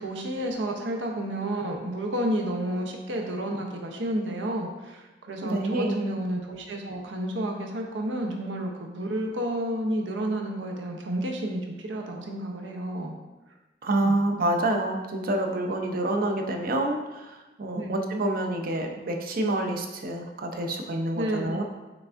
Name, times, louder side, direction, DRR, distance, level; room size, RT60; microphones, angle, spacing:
voice 1, 0.0-13.1 14.0-14.2 17.7-18.0 21.1-21.5, right 1 dB, 90° right, 1 dB, 0.7 m, -31 dB
voice 2, 5.4-6.0 13.8-21.6, right 1 dB, 55° right, 3 dB, 0.6 m, -27 dB
5.9 x 3.4 x 2.5 m, 1.1 s
head